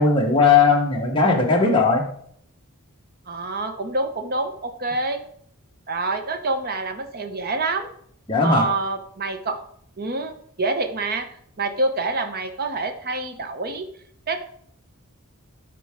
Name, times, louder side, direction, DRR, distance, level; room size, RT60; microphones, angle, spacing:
voice 1, 0.0-2.0 8.3-8.7, left 4 dB, 25° left, -1 dB, 1.1 m, -18 dB
voice 2, 3.3-5.2 5.9-7.9 8.4-9.6 10.0-11.3 11.6-13.9 14.3-14.4, right 3 dB, 45° right, 6 dB, 0.9 m, -26 dB
12.5 x 4.6 x 3.6 m, 0.64 s
head